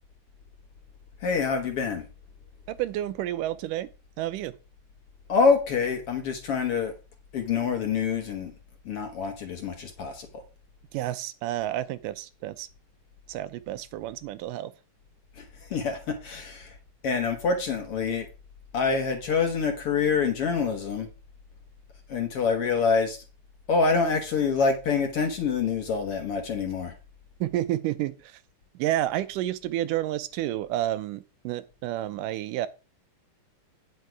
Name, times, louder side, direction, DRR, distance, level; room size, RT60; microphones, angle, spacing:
voice 1, 1.2-2.1 5.3-6.9 7.3-8.5 8.9-10.3 15.4-16.8 17.0-18.3 18.7-21.1 22.1-23.2 23.7-26.9, left 5 dB, 55° left, 1.8 m, -26 dB
voice 2, 2.7-3.9 4.2-4.5 10.9-12.7 13.3-14.7 27.4-28.4 28.7-32.7, right 14 dB, 90° right, 2.3 m, -30 dB
9.4 x 6.4 x 4.7 m
omnidirectional pair, 3.7 m